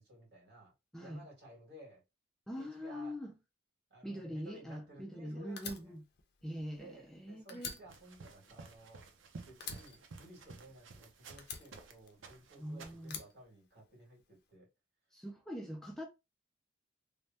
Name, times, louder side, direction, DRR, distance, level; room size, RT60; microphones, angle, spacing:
voice 1, 0.0-2.0 2.6-3.2 3.9-6.0 6.8-9.1 9.4-14.7, right 1 dB, 60° right, 1.9 m, -56 dB
voice 2, 0.9-1.2 2.5-3.3 4.0-6.0 6.4-7.7 12.6-13.2 15.1-16.0, equal, ahead, 0.3 m, -43 dB
Fire, 5.6-7.2 7.5-9.2 9.6-10.9 11.4-12.5 13.0-14.2, left 6 dB, 60° left, 0.6 m, -47 dB
sound 1, 7.9-11.9 12.2-13.1, right 4 dB, 90° right, 0.6 m, -53 dB
3.3 x 2.1 x 2.7 m
head